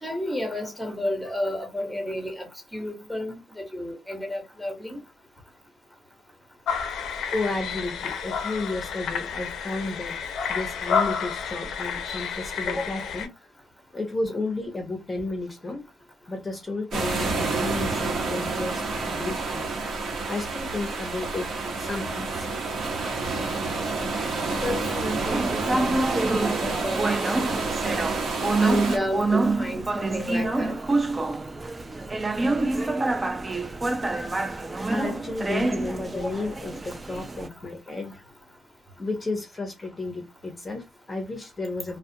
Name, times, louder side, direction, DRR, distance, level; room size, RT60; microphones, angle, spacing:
voice 1, 0.0-2.5 2.7-5.0 24.6-26.0 26.3-27.1 28.6-30.8, left 1 dB, ahead, 1.0 m, -31 dB
sound 1, 6.7-13.3, left 6 dB, 75° left, 0.5 m, -30 dB
voice 2, 7.3-10.2 10.5-13.5 13.9-15.9 16.3-19.8 20.3-22.5 34.9-38.2 39.0-42.0, left 2 dB, 25° left, 0.7 m, -32 dB
sound 2, 16.9-29.0, right 3 dB, 55° right, 1.0 m, -29 dB
sound 3, 25.2-37.5, right 2 dB, 25° right, 0.4 m, -27 dB
2.4 x 2.1 x 2.6 m
cardioid pair, 90°, 0 cm